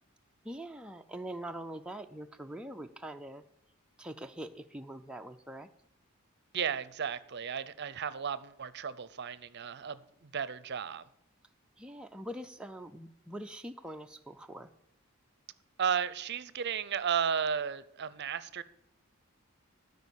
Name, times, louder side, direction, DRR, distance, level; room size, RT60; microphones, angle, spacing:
voice 1, 0.4-3.4 4.0-5.7 11.8-14.7, right 1 dB, 5° right, 4 dB, 0.3 m, -43 dB
voice 2, 6.5-11.0 15.8-18.6, right 7 dB, 50° right, 16 dB, 0.6 m, -34 dB
12.5 x 5.2 x 8.2 m, 0.79 s
head